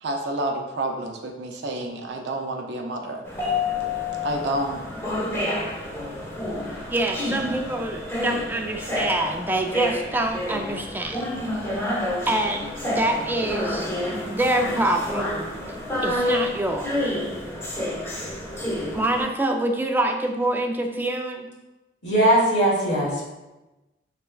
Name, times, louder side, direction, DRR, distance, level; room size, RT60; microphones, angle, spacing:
voice 1, 0.0-3.2 3.7-3.9 4.2-4.8, right 1 dB, 70° right, 3 dB, 0.5 m, -29 dB
sound 1, 3.3-19.2, left 1 dB, 15° left, 0.9 m, -29 dB
voice 2, 6.9-11.3 12.3-13.9 14.3-15.8 16.0-17.2 18.9-21.5, right 1 dB, 10° right, 3 dB, 0.3 m, -26 dB
voice 3, 22.0-23.3, right 1 dB, 85° left, -6 dB, 1.3 m, -20 dB
4.4 x 3.2 x 2.2 m, 1.0 s
head